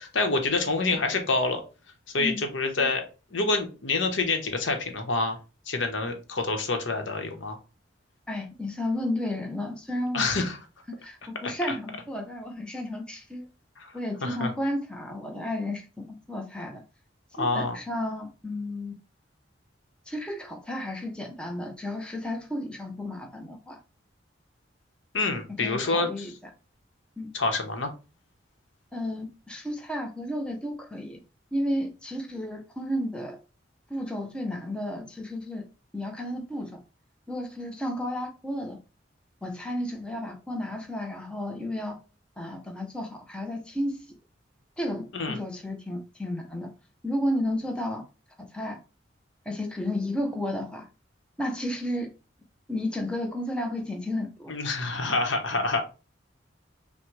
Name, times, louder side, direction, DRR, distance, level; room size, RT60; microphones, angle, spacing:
voice 1, 0.0-1.6 2.1-5.4 5.7-7.6 10.1-10.6 11.4-11.5 13.8-13.9 14.2-14.5 17.4-17.8 25.1-26.3 27.3-27.9 45.1-45.4 54.5-55.8, left 3 dB, 80° left, 0.9 m, -27 dB
voice 2, 8.3-10.2 10.9-13.5 13.9-16.8 17.4-19.0 20.1-23.8 25.6-26.3 27.2-27.3 28.9-31.2 31.5-33.4 33.9-35.7 35.9-36.8 37.3-38.8 39.4-42.0 42.4-44.1 44.8-46.7 47.0-48.0 48.5-48.8 49.5-50.9 51.4-52.1 52.7-54.5, left 1 dB, 5° left, 0.6 m, -32 dB
5.9 x 2.1 x 3.1 m
head